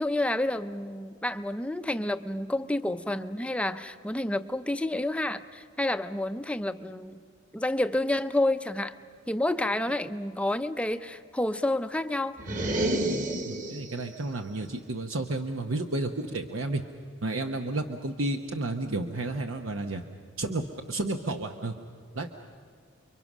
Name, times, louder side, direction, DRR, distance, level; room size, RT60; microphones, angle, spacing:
voice 1, 0.0-7.2 7.5-8.9 9.3-12.4, left 1 dB, 5° left, 10 dB, 0.6 m, -29 dB
sound 1, 12.4-14.0, right 1 dB, 40° right, 1.9 m, -29 dB
voice 2, 13.5-16.8 17.2-20.0 20.4-20.6 20.9-21.7 22.1-22.3, right 2 dB, 75° right, 5 dB, 1.1 m, -31 dB
30.0 x 23.5 x 6.2 m, 2.2 s
head